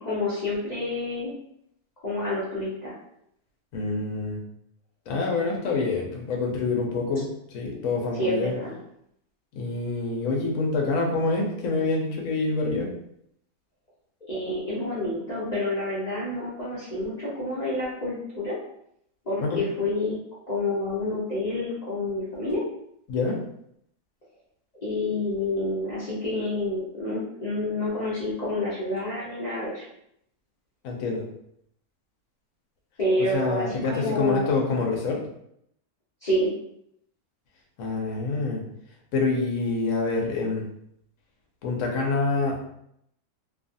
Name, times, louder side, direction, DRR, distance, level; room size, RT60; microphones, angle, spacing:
voice 1, 0.0-1.3 2.0-2.9 8.2-8.8 14.3-18.6 19.3-20.2 20.5-22.6 24.8-29.8 33.0-34.5 36.2-36.5, left 1 dB, 40° left, -9 dB, 0.6 m, -28 dB
voice 2, 3.7-4.4 5.1-8.5 9.5-12.9 19.4-19.6 23.1-23.4 30.8-31.3 33.3-35.2 37.8-38.6 39.1-40.6 41.6-42.7, left 3 dB, 65° left, 0 dB, 1.0 m, -26 dB
2.7 x 2.4 x 2.6 m, 0.74 s
omnidirectional pair, 1.7 m